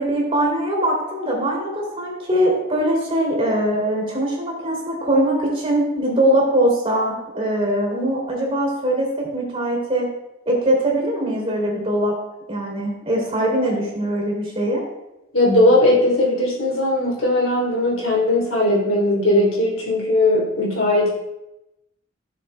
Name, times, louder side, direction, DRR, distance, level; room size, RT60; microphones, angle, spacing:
voice 1, 0.0-10.1 10.5-12.1 12.5-14.8, right 1 dB, 30° right, -1 dB, 2.7 m, -21 dB
voice 2, 15.3-21.1, left 1 dB, 80° left, -3 dB, 3.0 m, -18 dB
16.0 x 6.6 x 2.2 m, 0.91 s
head